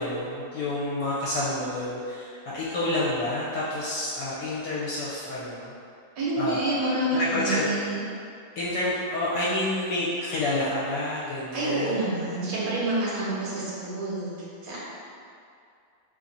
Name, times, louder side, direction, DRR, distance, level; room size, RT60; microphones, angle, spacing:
voice 1, 0.0-5.7 6.4-7.7 8.6-12.0, left 1 dB, 75° left, -8 dB, 1.2 m, -29 dB
voice 2, 6.2-8.0 11.5-14.3 14.6-14.8, right 2 dB, 50° right, -7 dB, 0.6 m, -28 dB
3.0 x 2.5 x 3.9 m, 2.4 s
omnidirectional pair, 2.0 m